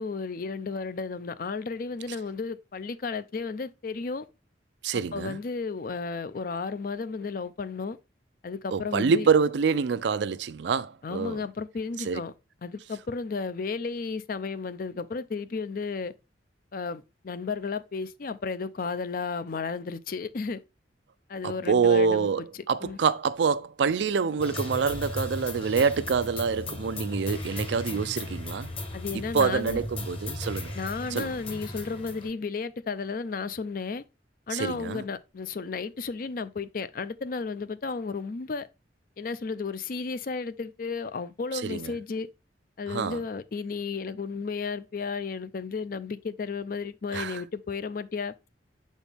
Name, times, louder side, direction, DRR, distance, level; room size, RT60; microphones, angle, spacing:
voice 1, 0.0-4.3 5.1-8.0 8.4-9.3 11.0-12.3 12.6-16.1 16.7-20.6 21.3-22.4 22.8-23.0 28.9-29.8 30.7-34.0 34.5-38.7 39.2-42.3 42.8-48.3, left 4 dB, 50° left, 0.5 m, -33 dB
voice 2, 4.8-5.4 8.7-11.4 12.1-12.2 21.4-28.7 29.3-30.7 31.1-31.3 34.5-35.0 41.6-41.9 42.9-43.2 47.1-47.4, right 5 dB, 75° right, 0.4 m, -26 dB
sound 1, 24.4-32.3, left 2 dB, 30° left, 1.1 m, -36 dB
7.1 x 4.3 x 3.4 m
head